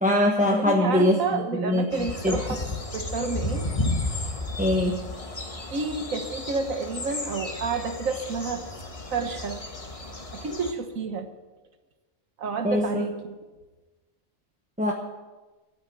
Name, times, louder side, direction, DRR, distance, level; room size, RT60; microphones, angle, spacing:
voice 1, 0.0-1.8 2.2-2.4 4.6-5.0 12.6-13.0 14.8-14.9, left 1 dB, 5° right, 0 dB, 1.0 m, -22 dB
voice 2, 0.5-2.6 2.9-3.7 5.7-8.7 9.1-9.6 10.3-11.3 12.4-13.4, right 4 dB, 85° right, 7 dB, 1.7 m, -30 dB
sound 1, 1.9-10.7, left 2 dB, 25° left, 1.4 m, -33 dB
14.0 x 9.0 x 8.6 m, 1.2 s
omnidirectional pair, 1.3 m